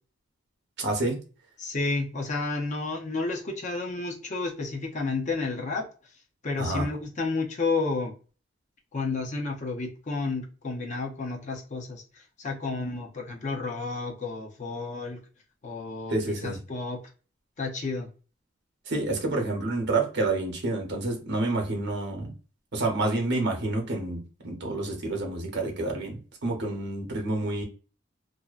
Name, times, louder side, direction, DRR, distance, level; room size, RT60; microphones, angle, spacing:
voice 1, 0.8-1.2 6.6-6.9 16.1-16.6 18.9-22.3 22.7-27.6, right 2 dB, 60° right, 0.8 m, -28 dB
voice 2, 1.6-5.9 6.4-8.1 8.9-15.2 15.6-17.0 17.6-18.1, left 3 dB, 40° left, 0.6 m, -31 dB
2.6 x 2.1 x 2.3 m
head